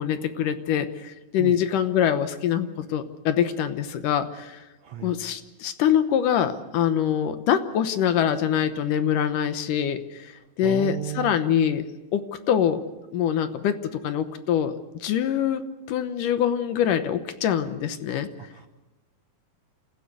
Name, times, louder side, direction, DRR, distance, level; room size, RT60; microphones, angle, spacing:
voice 1, 0.0-4.6 5.0-10.0 10.6-11.8 12.1-12.8 13.1-14.7 15.0-15.6 15.9-18.3, left 9 dB, 70° left, 10 dB, 2.4 m, -24 dB
voice 2, 10.6-11.4 18.4-18.7, right 10 dB, 65° right, 6 dB, 1.7 m, -33 dB
28.0 x 15.0 x 8.2 m, 1.1 s
omnidirectional pair, 4.1 m